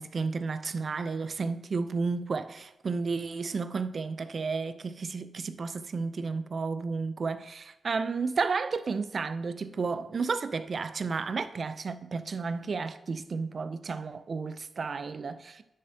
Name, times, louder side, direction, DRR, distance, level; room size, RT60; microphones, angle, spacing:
voice 1, 0.0-15.6, right 4 dB, 55° right, 0.5 m, -32 dB
10.0 x 6.9 x 2.8 m
cardioid pair, 70°, 0 cm